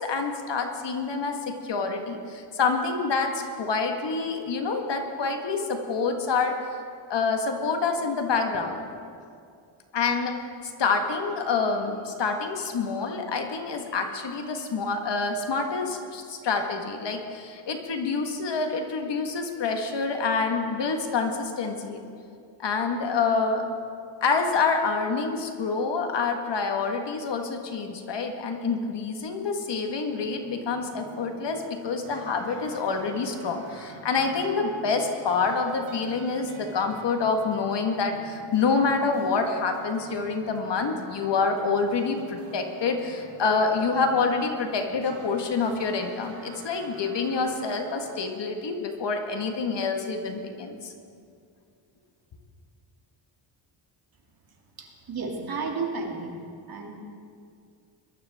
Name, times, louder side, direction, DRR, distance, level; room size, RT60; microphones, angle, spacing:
voice 1, 0.0-6.6 7.1-8.8 9.9-22.0 22.6-23.6 24.2-50.9, left 4 dB, 55° left, 4 dB, 1.7 m, -27 dB
sound 1, 30.1-48.2, right 3 dB, 90° right, 2.1 m, -48 dB
voice 2, 54.8-56.3 56.7-56.9, right 4 dB, 45° right, 0 dB, 2.7 m, -32 dB
21.5 x 13.0 x 3.6 m, 2.4 s
cardioid pair, 90°, 49 cm